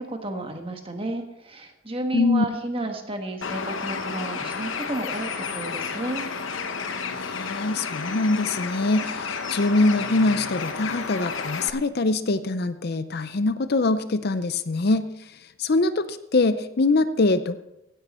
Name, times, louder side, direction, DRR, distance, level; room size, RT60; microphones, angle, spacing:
voice 1, 0.0-6.2, right 1 dB, 25° right, 5 dB, 1.4 m, -32 dB
voice 2, 2.1-2.4 7.2-15.3 15.6-17.6, left 2 dB, 45° left, 12 dB, 0.5 m, -23 dB
Bird, 3.4-11.7, left 5 dB, 65° left, 1.0 m, -31 dB
16.5 x 10.0 x 4.3 m, 0.87 s
head